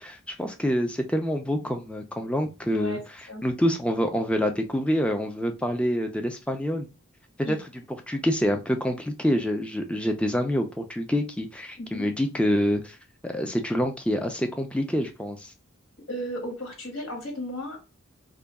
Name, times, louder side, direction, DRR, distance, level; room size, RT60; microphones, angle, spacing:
voice 1, 0.0-3.0 3.4-6.9 7.4-7.6 8.1-13.0 13.2-15.5, equal, 5° left, 5 dB, 0.4 m, -26 dB
voice 2, 16.1-17.8, equal, 70° left, 0 dB, 1.9 m, -34 dB
3.8 x 2.3 x 3.4 m, 0.29 s
head